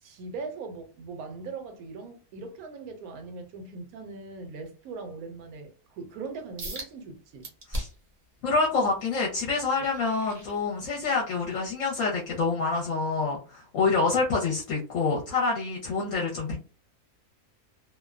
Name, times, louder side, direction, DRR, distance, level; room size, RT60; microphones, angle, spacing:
voice 1, 0.0-7.5, right 4 dB, 75° right, 1.0 m, -40 dB
sound 1, 6.6-6.9 7.4-8.1 8.6-11.2 11.7-11.9 12.4-12.5, right 1 dB, 35° right, 0.6 m, -38 dB
voice 2, 8.4-16.6, left 4 dB, 65° left, 1.0 m, -27 dB
2.6 x 2.1 x 2.3 m
omnidirectional pair, 1.6 m